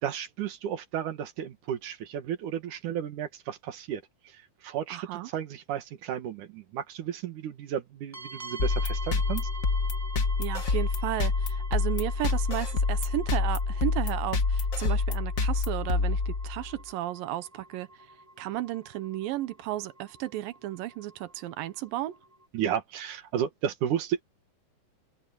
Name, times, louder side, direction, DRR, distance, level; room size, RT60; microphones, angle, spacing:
voice 1, 0.0-9.5 22.5-24.2, right 9 dB, 65° right, 2.9 m, -33 dB
voice 2, 4.9-5.3 10.4-17.9 18.4-22.2, right 14 dB, 90° right, 2.7 m, -34 dB
sound 1, 8.1-22.5, right 2 dB, 5° right, 6.3 m, -47 dB
sound 2, 8.6-16.8, left 4 dB, 55° left, 0.8 m, -27 dB
omnidirectional pair, 4.0 m